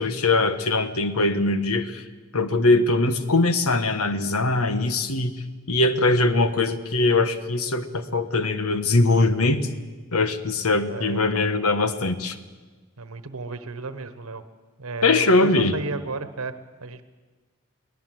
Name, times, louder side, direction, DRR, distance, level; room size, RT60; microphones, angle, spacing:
voice 1, 0.0-2.0 2.3-5.3 5.7-9.7 10.1-12.4 15.0-15.7, left 2 dB, 85° left, 10 dB, 1.3 m, -21 dB
voice 2, 10.9-11.5 13.0-14.4 14.8-16.5 16.8-17.0, right 3 dB, 75° right, 11 dB, 1.1 m, -33 dB
23.0 x 18.0 x 7.7 m, 1.3 s
head